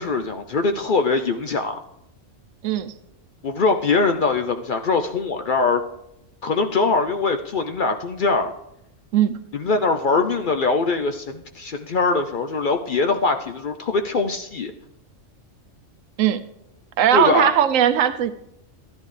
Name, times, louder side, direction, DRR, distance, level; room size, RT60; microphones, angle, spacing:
voice 1, 0.0-1.8 3.4-5.8 6.4-8.5 9.5-14.7 17.1-17.5, left 4 dB, 55° left, 6 dB, 0.6 m, -22 dB
voice 2, 17.0-18.3, right 10 dB, 90° right, 11 dB, 1.0 m, -18 dB
13.5 x 10.5 x 3.2 m, 0.82 s
omnidirectional pair, 1.3 m